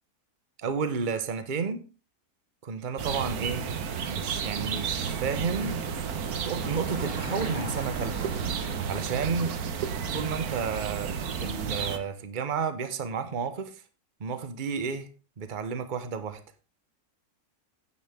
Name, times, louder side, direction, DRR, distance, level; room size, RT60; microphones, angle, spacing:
voice 1, 0.6-1.8 2.6-3.8 4.1-5.8 6.4-8.3 8.9-9.6 10.1-13.8 14.2-15.1 15.4-16.4, right 5 dB, 35° right, 1.0 m, -32 dB
sound 1, 3.0-12.0, right 7 dB, 75° right, 1.4 m, -32 dB
Car passing by / Engine, 4.3-10.9, left 2 dB, 50° left, 2.9 m, -44 dB
9.7 x 8.5 x 3.6 m
omnidirectional pair, 1.6 m